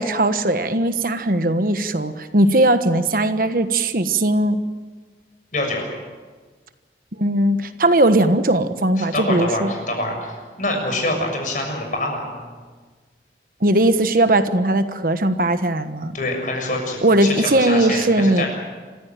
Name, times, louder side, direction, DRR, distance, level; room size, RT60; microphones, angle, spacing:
voice 1, 0.0-4.6 7.2-9.7 13.6-16.1 17.0-18.4, right 1 dB, 55° right, 9 dB, 1.3 m, -19 dB
voice 2, 5.5-5.9 9.0-12.4 16.1-18.5, left 1 dB, 45° left, 2 dB, 6.8 m, -25 dB
27.5 x 15.5 x 9.1 m, 1.4 s
head